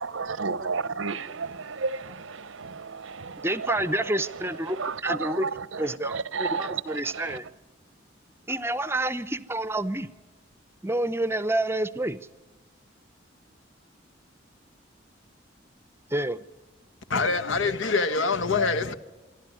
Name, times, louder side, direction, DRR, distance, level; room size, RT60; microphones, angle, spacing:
voice 1, 0.0-7.4, right 4 dB, 80° right, 0.9 m, -33 dB
voice 2, 3.4-5.5 5.8-7.4 8.5-10.1 10.8-12.2 16.1-16.4, right 1 dB, 10° right, 0.7 m, -28 dB
voice 3, 17.1-18.9, left 4 dB, 75° left, 1.3 m, -25 dB
25.5 x 12.0 x 9.2 m
head